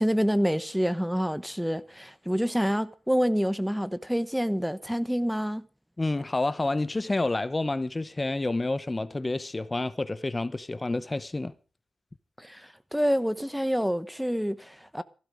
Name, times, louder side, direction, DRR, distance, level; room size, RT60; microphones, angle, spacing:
voice 1, 0.0-5.6 12.4-15.0, equal, ahead, 1.0 m, -27 dB
voice 2, 6.0-11.5, left 2 dB, 25° left, 0.9 m, -29 dB
15.5 x 12.5 x 5.2 m
cardioid pair, 80°, 0 cm